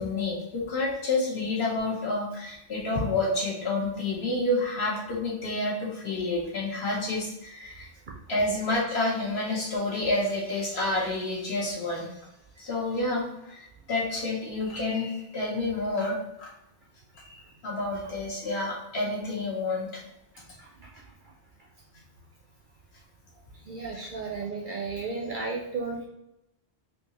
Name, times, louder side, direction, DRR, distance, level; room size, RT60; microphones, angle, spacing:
voice 1, 0.0-7.9 8.3-12.1 12.6-16.5 17.2-17.4 17.6-20.0, left 2 dB, 65° left, -3 dB, 1.2 m, -29 dB
voice 2, 23.7-26.1, right 4 dB, 60° right, -1 dB, 0.6 m, -33 dB
3.5 x 2.7 x 2.9 m, 0.86 s
omnidirectional pair, 1.2 m